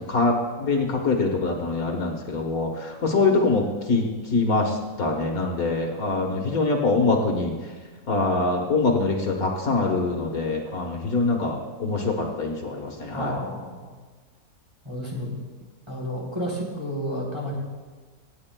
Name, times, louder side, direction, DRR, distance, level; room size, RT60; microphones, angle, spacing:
voice 1, 0.1-7.5 8.1-13.3, left 3 dB, 65° left, 1 dB, 1.7 m, -24 dB
voice 2, 13.1-13.9 14.8-15.4 15.9-17.5, equal, 15° right, -5 dB, 3.4 m, -31 dB
25.5 x 9.7 x 2.3 m, 1.4 s
omnidirectional pair, 1.7 m